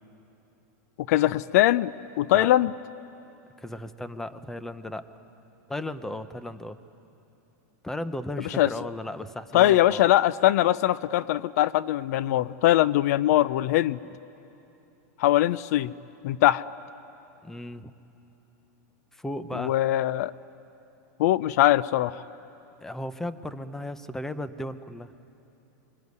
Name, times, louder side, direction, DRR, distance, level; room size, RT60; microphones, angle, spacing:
voice 1, 1.1-2.7 8.6-8.7 9.5-14.0 15.2-15.9 16.2-16.6 19.5-20.3 21.2-22.1, left 14 dB, 65° left, 18 dB, 0.5 m, -22 dB
voice 2, 3.6-5.1 5.7-6.8 7.8-10.0 17.4-17.9 19.1-19.7 22.8-25.1, left 1 dB, 5° left, 12 dB, 0.7 m, -35 dB
27.5 x 23.0 x 9.6 m, 2.9 s
supercardioid pair, 150°, 9 cm